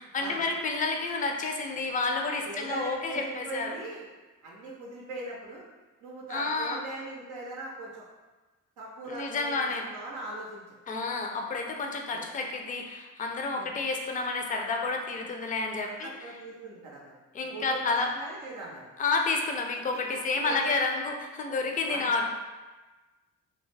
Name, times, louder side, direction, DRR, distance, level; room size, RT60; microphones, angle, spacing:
voice 1, 0.1-3.8 6.3-6.8 9.1-9.8 10.9-16.1 17.3-18.1 19.0-22.2, left 3 dB, 30° left, 2 dB, 0.4 m, -30 dB
voice 2, 2.5-4.1 4.4-5.6 6.0-8.0 8.8-10.8 12.1-12.2 13.5-13.7 15.8-17.2 17.5-18.8 20.4-20.7 21.9-22.1, right 2 dB, 85° right, -3 dB, 0.5 m, -40 dB
2.3 x 2.0 x 3.2 m, 1.2 s
cardioid pair, 90°, 30 cm